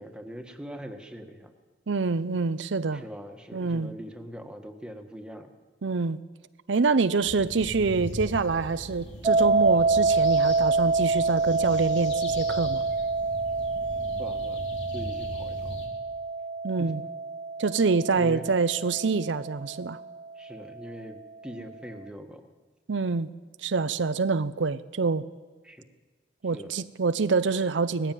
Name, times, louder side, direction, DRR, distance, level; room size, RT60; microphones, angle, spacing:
voice 1, 0.0-1.5 2.9-5.5 14.2-14.6 14.9-15.8 16.8-16.9 18.1-18.5 20.3-22.5 25.6-25.9 26.5-26.7, equal, 5° right, 4 dB, 1.5 m, -41 dB
voice 2, 1.9-3.0 3.5-3.9 5.8-6.2 6.7-12.8 16.6-17.0 17.6-20.0 22.9-23.3 23.6-25.2 26.4-28.1, right 4 dB, 75° right, 12 dB, 0.6 m, -26 dB
sound 1, 7.2-15.9, left 1 dB, 70° left, 3.8 m, -40 dB
sound 2, 9.2-20.2, right 3 dB, 25° right, 0.6 m, -27 dB
19.0 x 15.0 x 9.2 m, 1.4 s
head